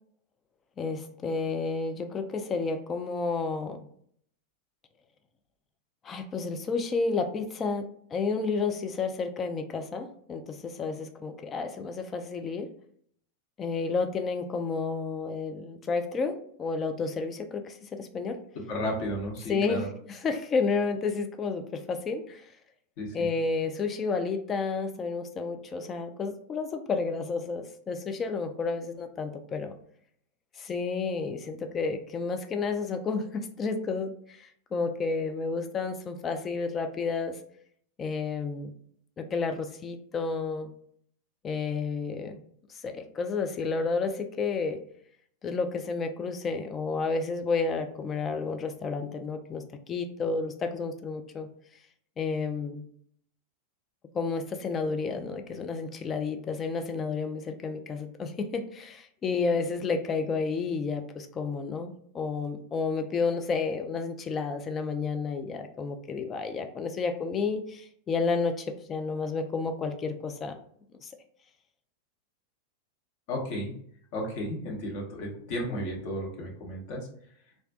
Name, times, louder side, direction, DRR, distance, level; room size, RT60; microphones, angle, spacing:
voice 1, 0.8-3.9 6.0-12.7 13.6-18.4 19.5-22.5 23.1-29.7 30.6-37.4 38.0-38.7 39.2-40.7 41.4-42.4 42.8-44.8 45.4-51.5 52.2-52.9 54.1-70.6 71.0-71.1, left 4 dB, 25° left, 7 dB, 0.3 m, -31 dB
voice 2, 18.7-19.9 23.0-23.3 73.3-73.7 74.1-77.1, equal, 45° left, -1 dB, 0.8 m, -33 dB
2.3 x 2.1 x 2.6 m, 0.64 s
figure-of-eight pair, 90°, 0 cm